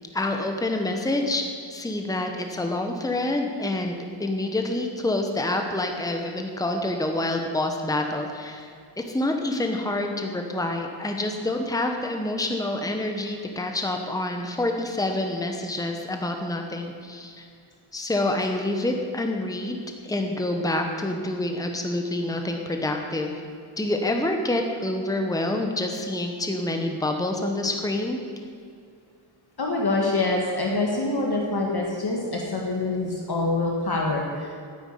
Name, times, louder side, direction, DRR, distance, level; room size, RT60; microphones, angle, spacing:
voice 1, 0.1-1.4 1.7-17.5 17.9-23.3 23.8-28.2, left 1 dB, 5° left, 4 dB, 1.0 m, -27 dB
voice 2, 29.6-34.5, left 2 dB, 50° left, -1 dB, 1.7 m, -25 dB
9.5 x 9.1 x 9.9 m, 2.3 s
wide cardioid pair, 165°, 49 cm